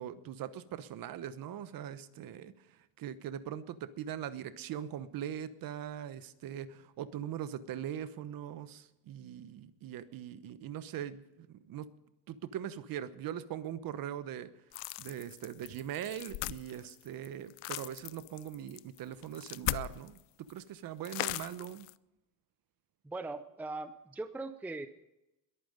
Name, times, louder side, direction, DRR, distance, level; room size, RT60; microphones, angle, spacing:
voice 1, 0.0-11.9 12.3-14.5 15.0-21.8, right 10 dB, 50° right, 14 dB, 1.1 m, -41 dB
sound 1, 14.7-20.2 20.5-20.6 21.0-21.9, left 20 dB, 65° left, 0.6 m, -39 dB
voice 2, 23.0-24.9, right 2 dB, 5° right, 10 dB, 0.6 m, -40 dB
22.0 x 9.3 x 5.2 m, 0.92 s
cardioid pair, 135°, 46 cm